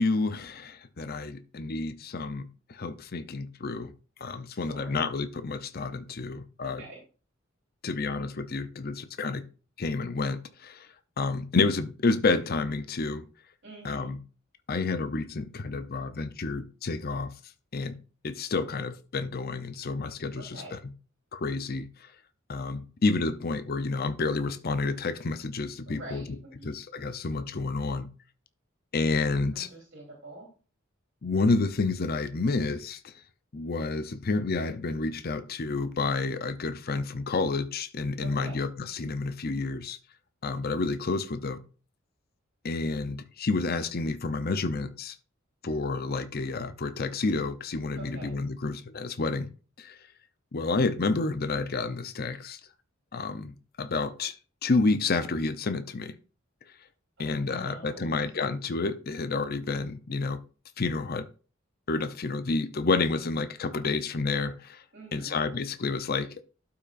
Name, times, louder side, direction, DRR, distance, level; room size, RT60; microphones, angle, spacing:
voice 1, 0.0-3.9 4.2-6.8 7.8-9.4 9.8-10.9 11.2-13.3 13.8-14.2 14.7-17.3 17.7-18.0 18.2-20.6 21.3-22.1 22.5-26.2 26.6-28.1 28.9-29.7 31.2-33.1 33.5-40.0 40.4-41.6 42.6-45.2 45.6-49.5 49.8-50.0 50.5-52.6 53.1-54.4 54.6-56.1 57.2-60.4 60.8-61.3 61.9-64.8 65.1-66.4, left 3 dB, 50° left, 0.6 m, -29 dB
voice 2, 4.5-5.0 6.6-7.0 13.6-14.1 20.4-20.8 25.9-26.8 29.5-30.5 38.2-38.6 48.0-48.4 57.2-58.4 64.9-65.4, right 2 dB, 60° right, 2.9 m, -46 dB
12.5 x 5.8 x 2.5 m
head